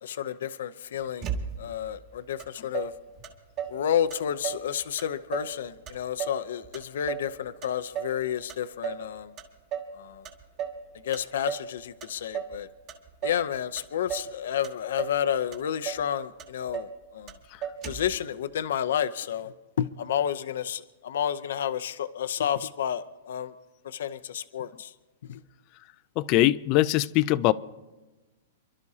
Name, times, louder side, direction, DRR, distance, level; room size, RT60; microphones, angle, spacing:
voice 1, 0.0-2.9 3.7-9.3 10.0-10.2 11.0-12.7 13.2-17.3 17.9-19.5 19.8-23.5 23.8-24.9 25.3-25.4, left 9 dB, 70° left, 0.7 m, -30 dB
Motor vehicle (road), 1.2-1.9 2.4-2.5 2.7-3.8 4.1-4.7 5.0-5.6 5.9-7.3 7.6-8.2 8.5-9.1 9.4-10.0 10.2-10.8 11.1-11.7 12.0-12.6 12.9-13.5 13.8-14.3 14.6-15.2 15.5-15.6 15.8-16.1 16.4-17.0 17.3-17.4 17.6-18.2, right 8 dB, 30° right, 2.0 m, -35 dB
voice 2, 26.2-27.5, left 16 dB, 35° left, 0.4 m, -22 dB
29.0 x 12.0 x 2.8 m
hypercardioid pair, 160°, 0 cm